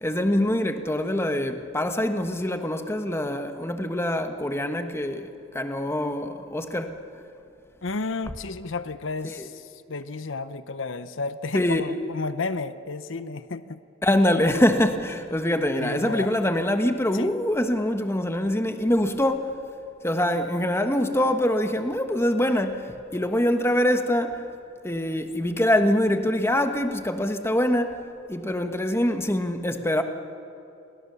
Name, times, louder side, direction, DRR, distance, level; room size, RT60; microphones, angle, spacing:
voice 1, 0.0-6.9 9.2-9.3 11.5-11.8 14.0-19.5 20.0-24.4 24.8-28.0 28.3-30.0, left 1 dB, 15° left, 1.3 m, -24 dB
voice 2, 7.8-13.8 15.8-16.3 17.1-17.3, left 3 dB, 75° left, 0.8 m, -32 dB
30.0 x 23.0 x 7.0 m
head